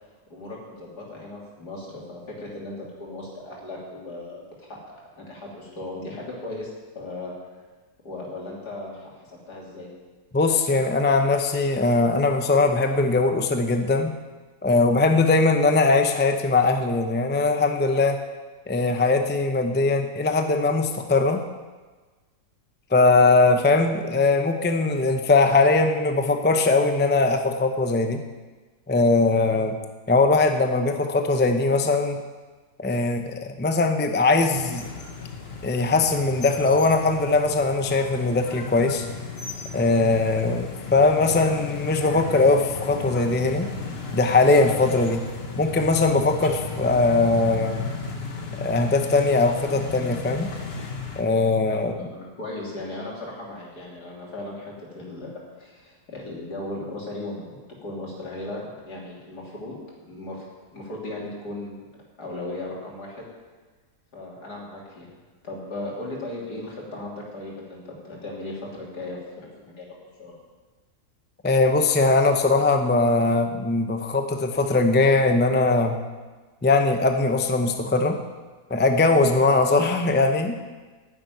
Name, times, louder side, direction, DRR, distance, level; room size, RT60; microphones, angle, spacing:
voice 1, 0.3-4.8 5.2-7.3 8.1-9.9 51.7-59.8 60.1-60.5 60.7-61.8 62.2-63.3 64.1-65.1 65.4-70.4, left 2 dB, 80° left, -4 dB, 3.6 m, -37 dB
voice 2, 10.3-14.1 14.6-18.2 18.7-21.4 22.9-28.2 28.9-29.8 30.1-32.2 32.8-34.9 35.6-39.1 39.7-43.7 44.1-45.2 45.6-47.8 48.6-50.6 51.2-51.9 71.4-76.0 76.6-78.2 78.7-80.5, left 3 dB, 15° left, 6 dB, 0.4 m, -20 dB
sound 1, 34.5-51.2, left 5 dB, 40° left, 1.4 m, -34 dB
10.5 x 7.6 x 9.2 m, 1.3 s
omnidirectional pair, 1.7 m